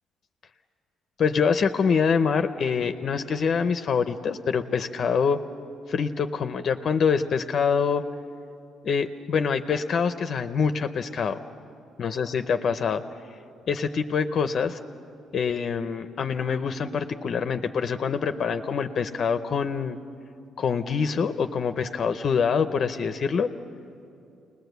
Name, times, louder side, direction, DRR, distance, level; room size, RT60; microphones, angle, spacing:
voice 1, 1.2-5.4 5.9-8.0 8.8-11.4 12.0-13.0 13.7-14.8 15.3-20.0 20.6-23.5, left 6 dB, 40° left, 8 dB, 0.6 m, -25 dB
29.0 x 20.0 x 8.1 m, 2.6 s
cardioid pair, 170°, 0 cm